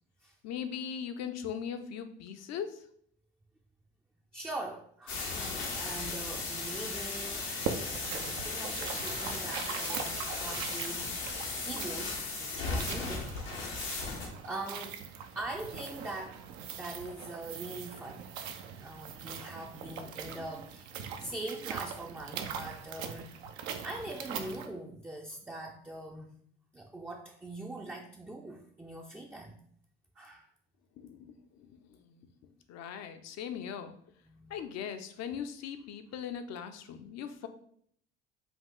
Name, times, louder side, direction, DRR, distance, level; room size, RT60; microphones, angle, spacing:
voice 1, 0.4-2.8 31.0-31.7 32.0-32.3 32.7-33.9 34.5-37.5, left 8 dB, 55° left, 8 dB, 0.6 m, -39 dB
voice 2, 4.3-5.3 5.7-11.1 11.6-13.3 14.1-14.2 14.4-15.0 15.4-16.4 16.7-18.3 18.8-20.9 21.2-23.4 23.8-26.3 26.7-29.6 30.2-30.5 34.2-34.6, right 2 dB, 5° right, 0 dB, 0.5 m, -42 dB
sound 1, 5.1-14.3, left 3 dB, 85° left, 1.1 m, -36 dB
sound 2, 7.5-24.7, right 7 dB, 70° right, 0.6 m, -42 dB
5.6 x 2.4 x 3.6 m, 0.64 s
hypercardioid pair, 60°, 32 cm